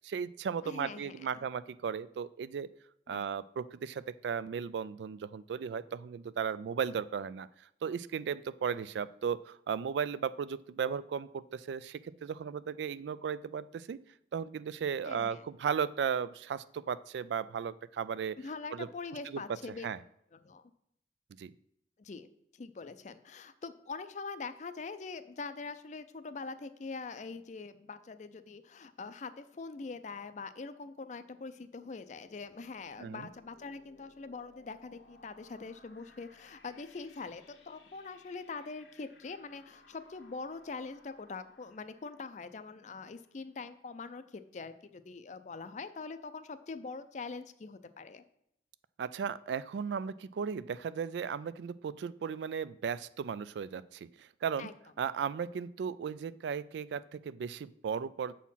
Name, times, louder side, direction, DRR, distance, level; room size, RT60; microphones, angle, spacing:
voice 1, 0.0-2.7 3.1-7.5 7.8-14.0 14.3-18.4 18.7-18.9 19.3-19.4 19.8-20.0 21.4-21.5 33.0-33.3 49.0-54.7 55.0-58.3, right 7 dB, 80° right, 17 dB, 0.3 m, -36 dB
voice 2, 0.6-1.4 3.1-3.2 15.0-15.4 18.4-19.9 20.3-20.6 22.0-22.3 22.5-48.2 54.6-54.7, left 4 dB, 40° left, 12 dB, 0.4 m, -43 dB
sound 1, 32.0-43.7, left 3 dB, 85° left, 1.2 m, -62 dB
7.1 x 4.3 x 5.6 m, 0.76 s
head